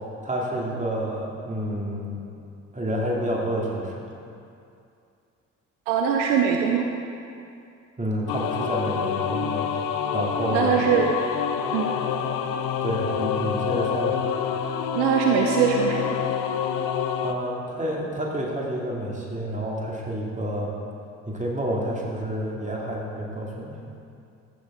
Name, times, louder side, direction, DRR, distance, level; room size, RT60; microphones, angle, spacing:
voice 1, 0.2-2.2 2.7-4.1 8.0-9.7 10.1-10.7 12.8-14.2 17.2-20.7 21.3-23.8, equal, 20° right, -3 dB, 2.5 m, -29 dB
voice 2, 5.9-6.9 10.5-11.2 11.7-11.9 14.9-16.2, right 7 dB, 70° right, 2 dB, 0.7 m, -22 dB
sound 1, 8.3-17.3, left 8 dB, 55° left, 0.7 m, -27 dB
14.5 x 6.8 x 3.6 m, 2.5 s
figure-of-eight pair, 45°, 38 cm